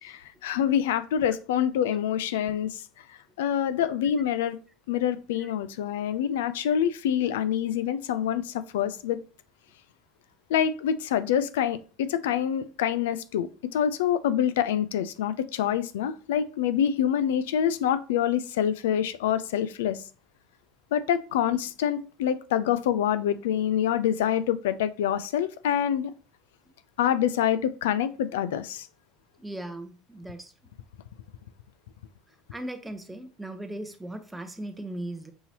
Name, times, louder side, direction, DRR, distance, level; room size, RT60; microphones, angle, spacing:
voice 1, 0.0-2.8 3.4-4.6 4.9-9.2 10.5-20.0 20.9-26.1 27.0-28.9, left 9 dB, 85° left, 0.3 m, -26 dB
voice 2, 29.4-30.5 32.5-35.3, right 1 dB, 10° right, 0.7 m, -38 dB
5.4 x 2.9 x 2.8 m
hypercardioid pair, 90°, 0 cm